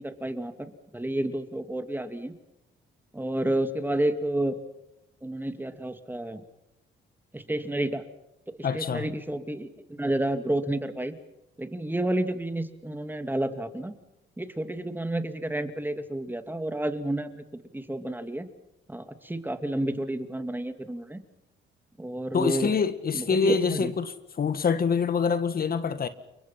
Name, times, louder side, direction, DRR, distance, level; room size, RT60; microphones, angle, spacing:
voice 1, 0.0-2.3 3.1-4.6 5.2-6.4 7.3-8.0 8.5-11.1 11.6-13.9 14.4-18.5 18.9-21.2 22.0-22.7 23.1-23.9, right 1 dB, 10° right, 2.5 m, -30 dB
voice 2, 8.6-9.1 22.3-26.1, left 5 dB, 50° left, 1.8 m, -25 dB
29.5 x 23.5 x 5.8 m
cardioid pair, 90°, 20 cm